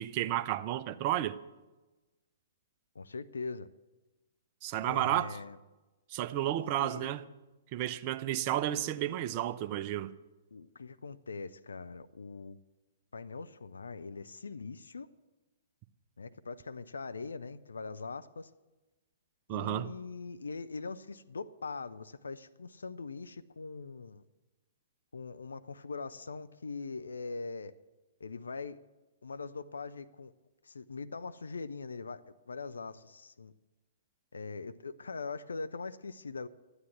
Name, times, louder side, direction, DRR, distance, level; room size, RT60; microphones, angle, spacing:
voice 1, 0.0-1.3 4.6-5.3 6.1-7.2 7.7-10.1 19.5-19.9, right 13 dB, 40° right, 0.7 m, -32 dB
voice 2, 2.9-3.7 4.8-5.6 6.6-7.2 10.5-12.6 13.1-15.1 16.2-18.5 19.5-24.2 25.1-27.7 28.2-28.8 29.2-30.3 30.6-33.5 34.3-36.5, left 4 dB, 75° left, 0.5 m, -42 dB
12.5 x 9.8 x 8.1 m
figure-of-eight pair, 115°, 0 cm